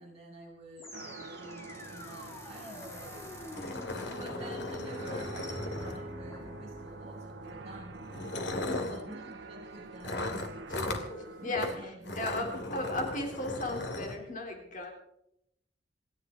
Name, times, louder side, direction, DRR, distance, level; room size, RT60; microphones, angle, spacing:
voice 1, 0.0-3.5 4.0-8.0 8.9-10.7 11.4-12.1 12.5-12.6, right 1 dB, 35° right, -3 dB, 6.3 m, -49 dB
sound 1, 0.8-9.9, equal, 15° left, 3.2 m, -46 dB
sound 2, 0.9-11.8, right 3 dB, 75° right, 1.3 m, -48 dB
sound 3, 2.8-2.9 3.2-3.3 3.5-6.3 7.3-7.5 8.1-9.0 10.0-11.1 11.5-11.7 12.0-14.2, left 2 dB, 65° left, 2.3 m, -37 dB
voice 2, 8.6-9.0 10.7-14.9, left 1 dB, 45° left, 2 dB, 3.4 m, -36 dB
28.0 x 11.5 x 3.8 m, 0.77 s
head